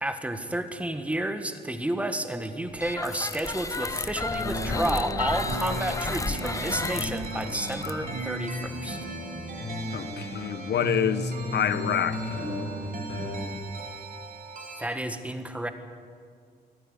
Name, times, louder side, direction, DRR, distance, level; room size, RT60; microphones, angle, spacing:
voice 1, 0.0-9.1 14.8-15.7, right 1 dB, 5° right, 1.5 m, -31 dB
sound 1, 2.8-8.7, left 3 dB, 20° left, 0.8 m, -33 dB
sound 2, 4.3-13.3, left 1 dB, 90° left, 8.0 m, -34 dB
sound 3, 5.4-14.8, right 4 dB, 50° right, 4.6 m, -42 dB
voice 2, 9.9-12.4, left 9 dB, 75° left, 0.8 m, -27 dB
24.0 x 15.0 x 9.7 m
wide cardioid pair, 150°, 18 cm